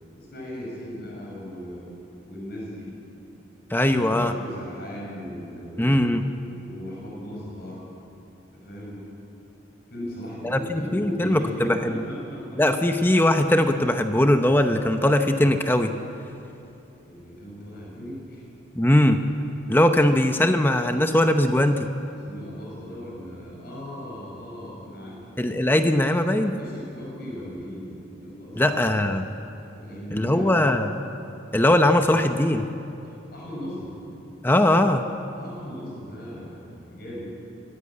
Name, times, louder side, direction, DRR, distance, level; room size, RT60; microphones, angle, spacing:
voice 1, 0.1-1.9 2.2-2.9 3.8-6.3 6.6-7.9 8.5-9.0 9.9-12.6 17.0-18.4 22.1-25.4 26.5-29.0 29.7-30.5 33.3-33.9 35.3-37.3, equal, 50° left, -4 dB, 5.8 m, -37 dB
voice 2, 3.7-4.3 5.8-6.2 10.5-11.7 12.6-15.9 18.8-19.2 19.7-21.9 25.4-26.5 28.6-29.2 30.1-30.9 31.5-32.7 34.4-35.0, left 1 dB, 10° left, 7 dB, 0.8 m, -20 dB
23.5 x 14.0 x 8.7 m, 2.8 s
head